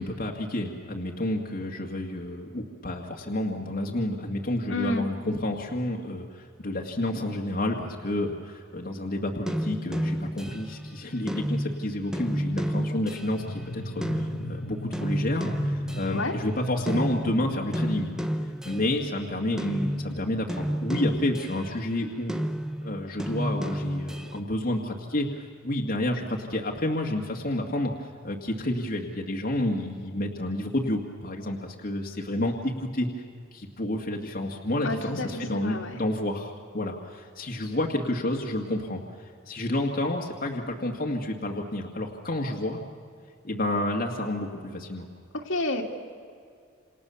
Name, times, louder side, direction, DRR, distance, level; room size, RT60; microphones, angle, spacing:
voice 1, 0.0-18.1 18.6-22.4 22.8-33.1 33.5-39.0 39.5-42.8 43.4-45.1, left 1 dB, 45° left, 0 dB, 2.0 m, -30 dB
voice 2, 4.7-5.1 16.1-16.3 34.8-36.0 45.3-45.8, left 2 dB, 65° left, 2 dB, 2.6 m, -30 dB
sound 1, 9.5-16.6 16.9-19.2 19.6-21.9 22.3-24.4, equal, 5° right, 0.9 m, -31 dB
sound 2, 13.3-18.3, left 1 dB, 85° left, 1.6 m, -37 dB
28.0 x 28.0 x 7.1 m, 2.2 s
head